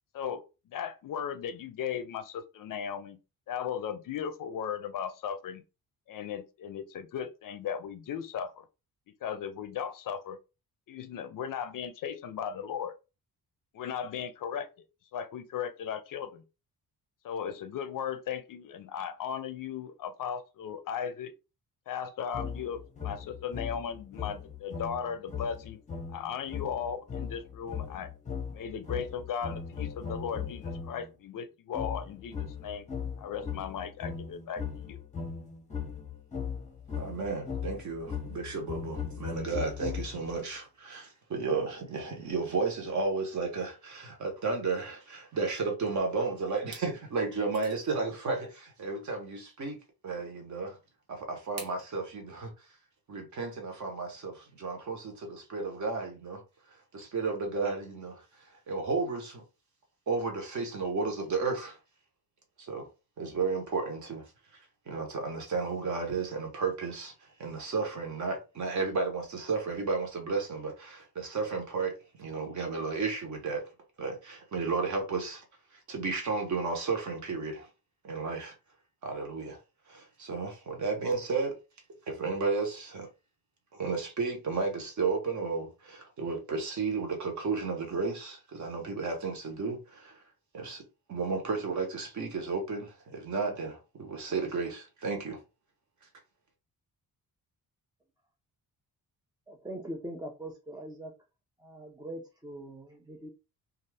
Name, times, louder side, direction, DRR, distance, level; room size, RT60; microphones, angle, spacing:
voice 1, 0.1-3.2 3.5-5.6 6.1-8.7 9.2-10.4 10.9-12.9 13.7-14.9 15.1-16.4 17.2-21.3 21.9-25.8 26.1-28.1 28.5-32.9 33.2-35.0, left 8 dB, 60° left, 0.5 m, -37 dB
sound 1, 22.3-31.1 31.7-40.4, left 6 dB, 20° left, 0.7 m, -38 dB
voice 2, 37.0-49.8 50.0-50.8 51.1-52.5 53.1-56.4 56.9-59.4 60.1-61.8 62.6-62.9 63.2-64.2 64.9-67.1 67.4-73.7 74.0-75.4 75.9-77.7 78.0-78.5 79.0-79.6 79.9-81.6 82.1-83.1 83.7-90.2 90.5-90.8 91.1-95.4, right 4 dB, 50° right, 0.9 m, -33 dB
sound 2, 45.8-46.2 46.6-46.9 47.5-48.0 49.5-49.6 51.6-51.8, right 4 dB, 90° right, 1.0 m, -46 dB
voice 3, 99.5-101.1 101.6-103.3, right 1 dB, 10° right, 0.3 m, -42 dB
2.6 x 2.4 x 3.3 m
wide cardioid pair, 165°, 38 cm